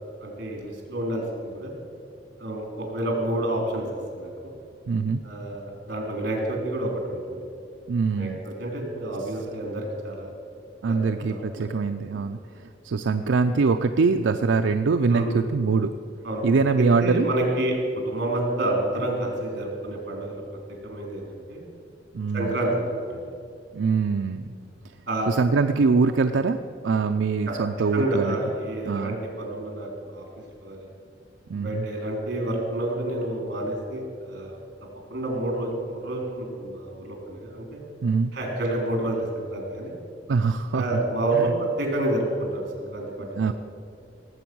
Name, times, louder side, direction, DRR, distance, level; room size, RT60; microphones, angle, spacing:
voice 1, 0.2-1.7 2.4-3.8 4.1-4.5 5.2-7.4 8.1-10.3 10.8-11.7 12.1-12.2 15.1-15.3 16.2-16.4 17.0-17.8 18.1-20.4 20.8-21.7 22.3-23.3 25.1-25.4 27.5-27.6 27.9-30.3 30.6-30.9 31.5-34.6 35.1-37.8 38.3-40.0 40.7-43.5, right 1 dB, 60° right, 1 dB, 3.6 m, -29 dB
voice 2, 4.9-5.2 7.9-8.4 10.8-12.4 12.8-15.9 16.4-17.3 22.1-22.5 23.7-24.4 25.3-26.6 26.8-28.4 28.9-29.1 31.5-31.9 38.0-38.3 40.3-40.8 41.3-41.5 43.4-43.5, right 4 dB, 90° right, 7 dB, 0.5 m, -23 dB
18.5 x 7.9 x 6.1 m, 2.4 s
head